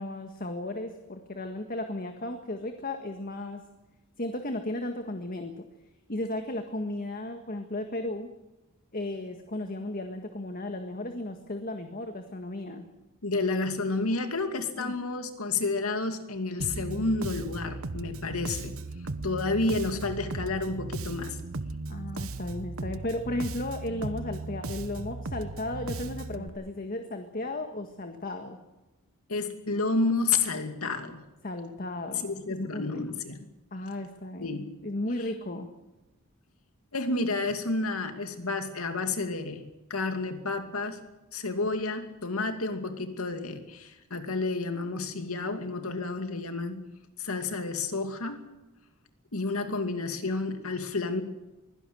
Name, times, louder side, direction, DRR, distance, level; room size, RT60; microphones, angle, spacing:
voice 1, 0.0-3.6 4.2-5.7 6.1-8.3 8.9-12.9 14.8-14.9 21.9-28.6 31.4-32.3 32.6-33.0 33.7-35.7, left 1 dB, 45° left, 6 dB, 1.7 m, -35 dB
voice 2, 13.2-18.7 19.2-21.4 29.3-31.2 32.2-33.4 34.4-34.7 36.9-41.0 41.3-46.8 47.2-48.4 49.3-51.2, left 3 dB, 85° left, 7 dB, 2.6 m, -30 dB
Bass guitar, 16.6-26.5, right 2 dB, 70° right, 1.1 m, -37 dB
23.5 x 16.5 x 7.8 m, 1.0 s
head